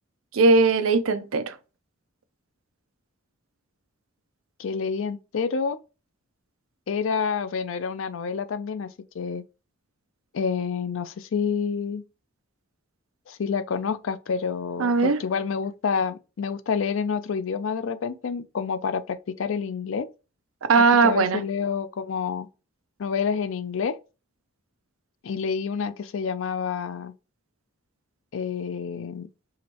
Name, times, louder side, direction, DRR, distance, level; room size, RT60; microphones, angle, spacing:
voice 1, 0.3-1.5 14.8-15.2 20.7-21.4, right 4 dB, 85° right, 0.6 m, -19 dB
voice 2, 4.6-5.8 6.9-8.9 9.1-9.4 10.3-12.0 13.3-20.1 21.0-22.5 23.0-24.0 25.2-27.1 28.3-29.3, left 6 dB, 70° left, 0.4 m, -28 dB
4.9 x 3.0 x 2.9 m
head